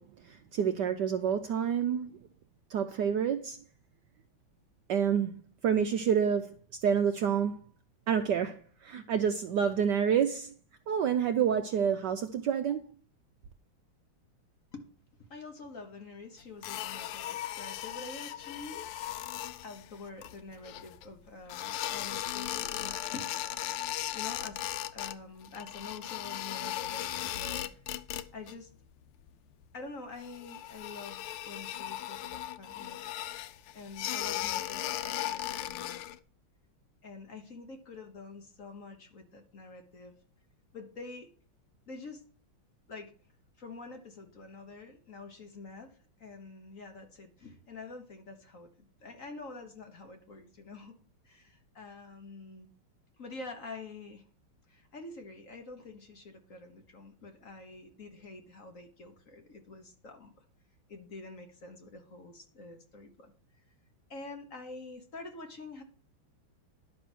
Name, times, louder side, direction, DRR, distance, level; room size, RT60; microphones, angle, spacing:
voice 1, 0.0-2.2 2.7-3.6 4.9-6.5 6.8-7.6 8.1-10.5 10.9-12.8, right 8 dB, 70° right, 1.0 m, -28 dB
voice 2, 15.3-18.9 19.6-24.6 24.9-27.8 28.3-28.7 29.7-33.0 33.7-36.0 37.0-40.1 40.7-41.3 41.9-42.2 42.9-43.1 43.6-48.7 49.0-50.9 51.2-52.7 53.2-54.2 54.7-60.3 60.9-63.3 64.1-65.8, left 3 dB, 45° left, 1.4 m, -47 dB
sound 1, 16.6-21.1 21.5-25.2 25.4-28.5 28.8-29.3 29.6-29.7 30.2-36.2, left 13 dB, 90° left, 1.6 m, -37 dB
11.0 x 6.2 x 6.0 m
omnidirectional pair, 2.4 m